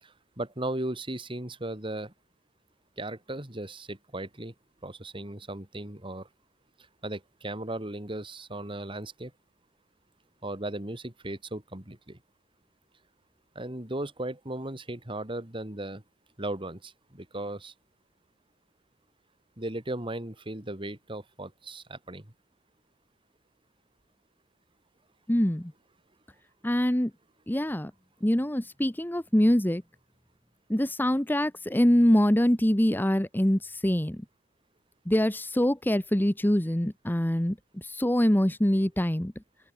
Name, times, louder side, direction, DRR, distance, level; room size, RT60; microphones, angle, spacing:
voice 1, 0.0-2.1 3.0-4.5 4.8-6.3 7.0-9.3 10.4-12.2 13.5-16.0 16.4-17.7 19.6-22.3, right 1 dB, 30° right, 2.9 m, -36 dB
voice 2, 25.3-25.7 26.6-27.1 27.5-27.9 28.2-29.8 30.7-34.2 35.1-39.3, equal, 10° left, 1.1 m, -24 dB
open air
head